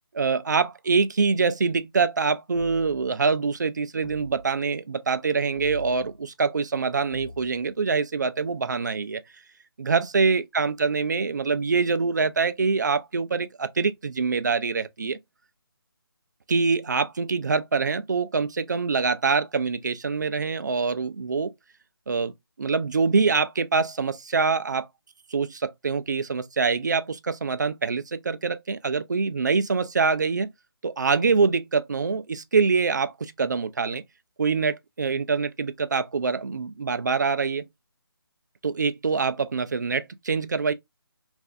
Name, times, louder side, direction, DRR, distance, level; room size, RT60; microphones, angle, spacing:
voice 1, 0.1-9.2 9.8-15.2 16.5-21.5 22.1-22.3 22.6-24.9 25.3-30.5 30.8-34.0 34.4-37.7 38.6-40.7, right 4 dB, 50° right, 0.4 m, -25 dB
sound 1, 2.5-3.2 4.0-4.6 5.6-6.2 7.1-7.7, equal, 40° left, 0.7 m, -43 dB
3.2 x 2.5 x 2.4 m
hypercardioid pair, 175°, 13 cm